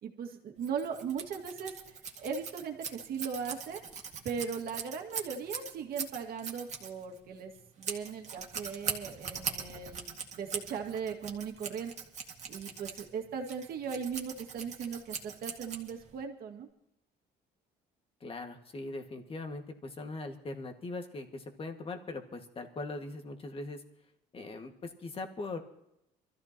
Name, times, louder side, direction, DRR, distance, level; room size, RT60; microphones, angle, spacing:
voice 1, 0.0-1.7 2.2-3.8 4.2-11.9 12.5-16.7, right 6 dB, 60° right, 2 dB, 2.1 m, -38 dB
Scissors, 0.6-16.2, right 6 dB, 45° right, 2.0 m, -41 dB
voice 2, 18.2-23.8 24.3-25.6, left 2 dB, 35° left, 5 dB, 1.9 m, -40 dB
24.0 x 14.5 x 3.0 m, 0.84 s
cardioid pair, 110°, 17 cm